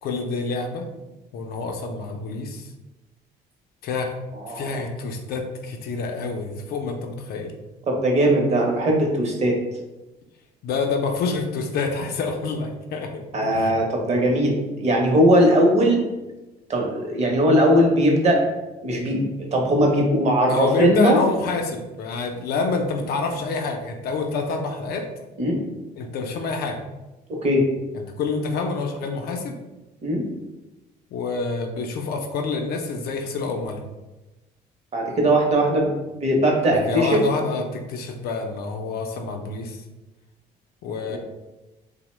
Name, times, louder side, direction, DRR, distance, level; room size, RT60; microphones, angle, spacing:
voice 1, 0.0-0.9 1.3-2.7 3.8-4.1 4.5-7.5 10.6-13.2 13.5-13.7 20.5-25.1 26.0-26.8 27.9-29.6 31.1-33.8 36.7-39.8 40.8-41.2, left 4 dB, 65° left, 4 dB, 0.5 m, -27 dB
voice 2, 4.4-4.8 7.9-9.6 13.3-16.1 16.7-18.4 18.8-21.2 25.4-25.6 27.3-27.7 30.0-30.2 34.9-37.2 41.1-41.2, equal, 40° right, 0 dB, 0.7 m, -19 dB
2.8 x 2.0 x 3.1 m, 1.1 s
cardioid pair, 110°, 17 cm